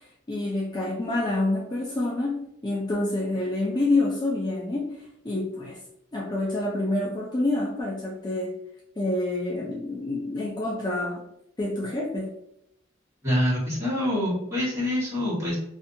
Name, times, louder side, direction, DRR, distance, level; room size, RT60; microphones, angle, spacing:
voice 1, 0.3-4.9 5.2-5.8 6.1-8.6 9.0-11.2 11.6-12.3, left 2 dB, 20° left, -4 dB, 0.4 m, -27 dB
voice 2, 13.2-15.5, left 1 dB, 15° right, -9 dB, 1.4 m, -25 dB
2.6 x 2.4 x 2.5 m, 0.77 s
head